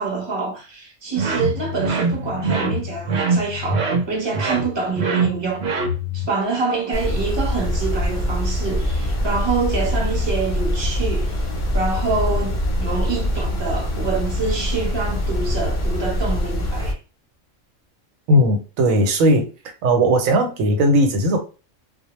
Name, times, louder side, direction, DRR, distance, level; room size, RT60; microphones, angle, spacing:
voice 1, 0.0-5.6 6.1-11.4 11.7-17.0, right 4 dB, 25° right, 0.7 m, -26 dB
sound 1, 1.1-6.3, right 2 dB, 60° right, 0.8 m, -23 dB
sound 2, 6.9-16.9, equal, 50° left, 0.6 m, -23 dB
voice 2, 18.3-19.5 19.8-21.4, equal, 85° right, 1.1 m, -17 dB
2.2 x 2.1 x 3.0 m
omnidirectional pair, 1.4 m